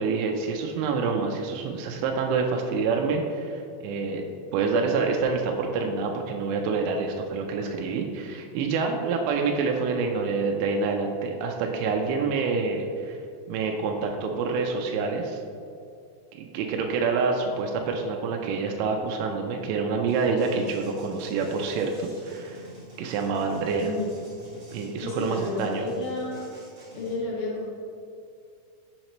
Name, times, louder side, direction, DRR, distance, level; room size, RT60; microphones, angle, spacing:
voice 1, 0.0-13.2 13.5-15.4 16.4-22.6 23.0-23.9 24.7-25.9, right 4 dB, 85° right, 2 dB, 2.6 m, -27 dB
sound 1, 20.1-27.2, right 1 dB, 60° right, 1.5 m, -48 dB
voice 2, 23.8-24.1 25.0-26.4 27.0-27.8, left 2 dB, 80° left, -5 dB, 2.2 m, -31 dB
6.5 x 5.2 x 3.0 m, 2.4 s
omnidirectional pair, 5.2 m